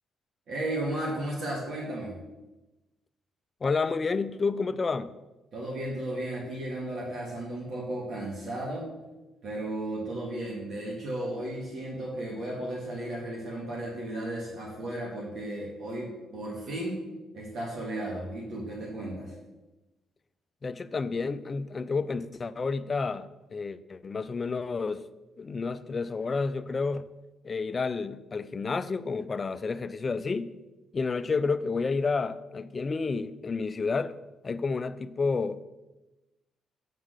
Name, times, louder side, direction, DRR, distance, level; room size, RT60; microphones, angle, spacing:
voice 1, 0.5-2.1 5.5-8.9 9.4-17.0 17.3-19.3, right 1 dB, 60° right, 1.7 m, -34 dB
voice 2, 3.6-5.1 20.6-25.1 25.4-27.1 27.4-30.5 30.9-34.2 34.4-35.6, left 4 dB, 30° left, 0.4 m, -30 dB
7.3 x 4.0 x 6.3 m
cardioid pair, 105°, 0 cm